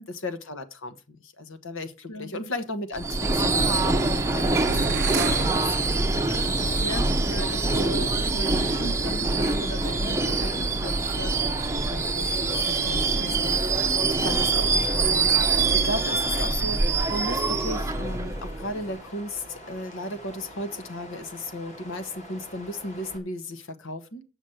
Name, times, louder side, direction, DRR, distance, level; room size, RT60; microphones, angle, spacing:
voice 1, 0.2-6.0 6.3-6.8 11.9-12.4 12.7-24.2, left 2 dB, 65° left, 1.2 m, -35 dB
voice 2, 2.1-2.5 6.8-11.7 13.1-13.4, equal, 90° left, 0.8 m, -38 dB
Subway metro underground / Screech, 3.0-18.9, right 3 dB, 15° right, 0.7 m, -24 dB
sound 1, 4.7-6.5, right 5 dB, 50° right, 0.5 m, -31 dB
Water, 9.4-23.2, equal, 35° left, 2.1 m, -45 dB
8.3 x 6.1 x 7.7 m
head